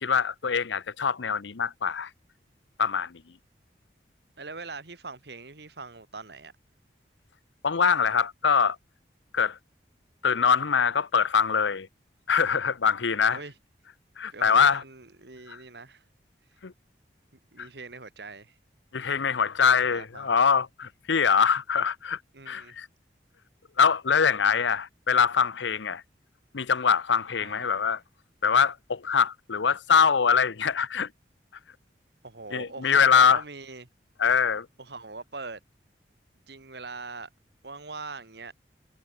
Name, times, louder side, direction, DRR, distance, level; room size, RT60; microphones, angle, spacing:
voice 1, 0.0-2.1 2.8-3.2 7.6-8.8 9.3-9.6 10.2-11.9 12.3-13.4 14.2-14.8 15.5-15.6 16.6-16.7 17.6-17.7 18.9-22.2 22.5-22.9 23.8-26.0 26.5-28.0 28.4-31.1 32.5-33.4 34.2-34.7, left 6 dB, 85° left, 0.7 m, -23 dB
voice 2, 4.4-6.5 13.2-13.5 14.3-16.0 17.5-18.6 19.7-20.3 22.3-22.7 27.4-27.6 32.2-33.9 34.8-35.6 36.5-37.3 37.6-38.5, right 3 dB, 70° right, 1.9 m, -42 dB
head